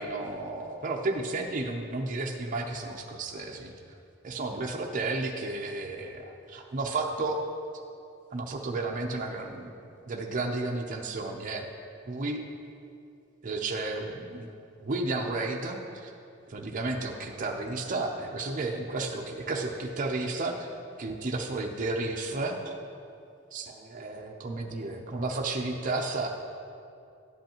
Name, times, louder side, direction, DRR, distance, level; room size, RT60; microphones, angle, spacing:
voice 1, 0.0-3.7 4.2-7.4 8.3-9.7 10.1-11.7 12.1-12.4 13.4-14.5 14.8-16.1 16.5-20.7 21.0-22.8 23.5-26.3, right 2 dB, 45° right, 1 dB, 0.6 m, -32 dB
11.5 x 7.8 x 2.9 m, 2.5 s
head